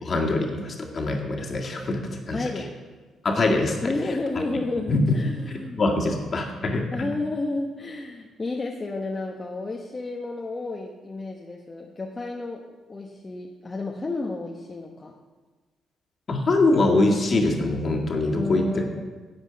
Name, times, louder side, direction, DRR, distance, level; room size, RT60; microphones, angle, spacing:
voice 1, 0.0-2.4 3.2-3.9 4.9-5.2 5.8-7.1 16.3-18.6, left 2 dB, 45° left, 0 dB, 2.0 m, -23 dB
voice 2, 2.3-2.7 3.8-5.8 6.9-12.6 12.9-15.1 18.3-19.0, left 2 dB, 25° left, 0 dB, 1.0 m, -31 dB
11.0 x 8.0 x 5.1 m, 1.4 s
cardioid pair, 90°, 0 cm